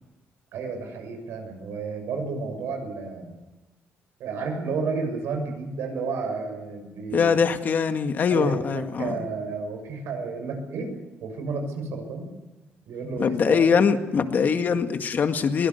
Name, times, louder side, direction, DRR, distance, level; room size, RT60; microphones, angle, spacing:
voice 1, 0.5-3.4 4.2-7.3 8.3-10.9 11.2-12.3 12.8-13.6, right 4 dB, 80° right, 5 dB, 6.7 m, -31 dB
voice 2, 7.1-9.2 13.2-15.7, left 6 dB, 45° left, 8 dB, 1.9 m, -22 dB
22.5 x 18.0 x 8.2 m, 1.1 s
cardioid pair, 135°, 4 cm